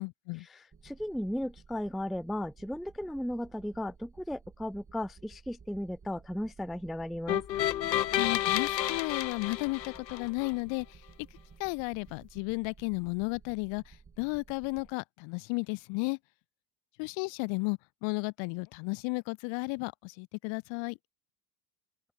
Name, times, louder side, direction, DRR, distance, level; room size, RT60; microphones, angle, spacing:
voice 1, 0.0-0.5 8.1-11.0 11.6-16.2 17.0-21.0, left 32 dB, 60° left, 1.6 m, -34 dB
voice 2, 0.5-7.4, left 1 dB, ahead, 0.4 m, -35 dB
sound 1, 0.7-14.9, right 5 dB, 25° right, 5.9 m, -55 dB
sound 2, 7.3-10.5, left 12 dB, 90° left, 1.2 m, -30 dB
hypercardioid pair, 75°, 49 cm